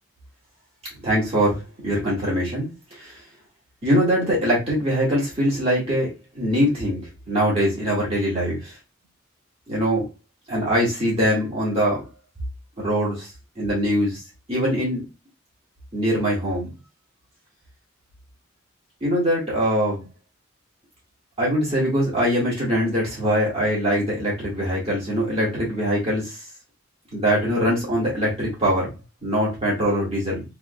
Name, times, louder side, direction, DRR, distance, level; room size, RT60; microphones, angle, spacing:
voice 1, 1.0-3.2 3.8-6.1 6.4-7.0 7.3-8.7 9.7-10.0 10.5-12.0 12.8-13.3 13.6-14.2 14.5-15.1 15.9-16.7 19.0-20.0 21.4-26.4 27.1-28.9 29.2-30.4, equal, 30° right, -6 dB, 1.7 m, -22 dB
3.5 x 3.3 x 2.2 m, 0.26 s
head